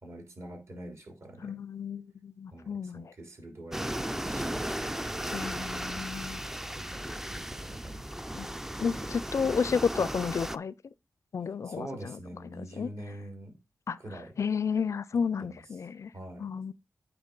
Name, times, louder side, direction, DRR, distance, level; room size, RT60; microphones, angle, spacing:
voice 1, 0.0-1.6 2.5-5.5 6.8-8.0 11.6-13.6 14.0-14.4 15.1-15.6 16.1-16.5, right 1 dB, 50° right, 3.6 m, -45 dB
voice 2, 1.4-3.1 5.3-6.4 8.3-8.5 8.8-10.7 11.3-12.2 12.5-12.9 13.9-14.0 14.4-16.1 16.4-16.7, left 6 dB, 60° left, 0.4 m, -31 dB
sound 1, 3.7-10.6, right 1 dB, 5° right, 0.4 m, -36 dB
8.9 x 4.5 x 5.3 m
cardioid pair, 75°, 6 cm